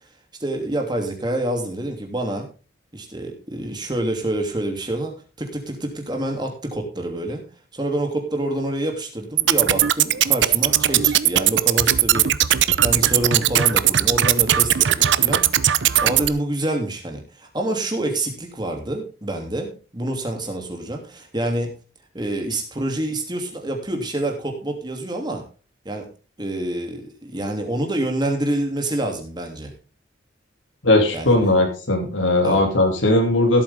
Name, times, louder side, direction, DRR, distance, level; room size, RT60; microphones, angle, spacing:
voice 1, 0.4-2.5 2.9-5.1 5.4-7.4 7.7-15.4 16.0-21.7 22.1-25.4 25.8-26.1 26.4-29.7 31.1-31.5 32.4-32.6, right 1 dB, 25° right, 2 dB, 2.9 m, -27 dB
sound 1, 9.4-16.3, right 11 dB, 70° right, 0.7 m, -18 dB
voice 2, 30.8-33.6, left 2 dB, 90° left, 1 dB, 2.8 m, -18 dB
17.0 x 8.5 x 3.7 m, 0.34 s
head